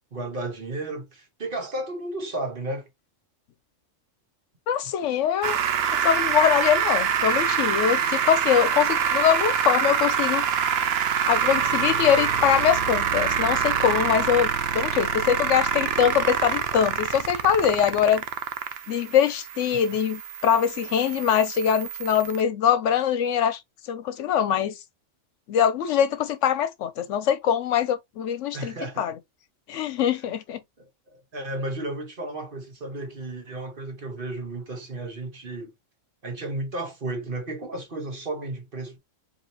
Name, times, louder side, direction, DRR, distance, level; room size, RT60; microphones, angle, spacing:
voice 1, 0.0-2.9 19.7-19.8 28.5-29.1 30.8-35.7 36.2-39.0, right 2 dB, 45° right, 1.3 m, -33 dB
voice 2, 4.7-5.6 6.0-10.4 11.3-18.2 18.9-24.8 25.5-29.1 29.7-30.6, left 9 dB, 75° left, 0.9 m, -23 dB
sound 1, 5.4-22.4, right 8 dB, 60° right, 0.8 m, -26 dB
sound 2, 5.4-8.2 10.3-12.9, right 6 dB, 80° right, 1.2 m, -36 dB
4.9 x 2.9 x 2.8 m
omnidirectional pair, 1.3 m